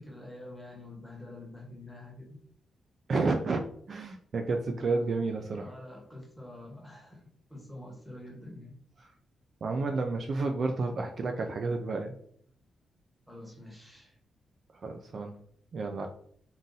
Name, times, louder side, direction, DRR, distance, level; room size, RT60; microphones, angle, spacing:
voice 1, 0.0-2.4 4.6-5.3 5.6-7.2 7.5-8.8 13.3-14.2, left 1 dB, ahead, -1 dB, 1.2 m, -46 dB
voice 2, 3.1-5.7 9.6-12.1 14.7-15.4 15.7-16.1, right 3 dB, 45° right, 4 dB, 0.4 m, -31 dB
3.9 x 2.5 x 3.9 m, 0.63 s
wide cardioid pair, 140°, 0 cm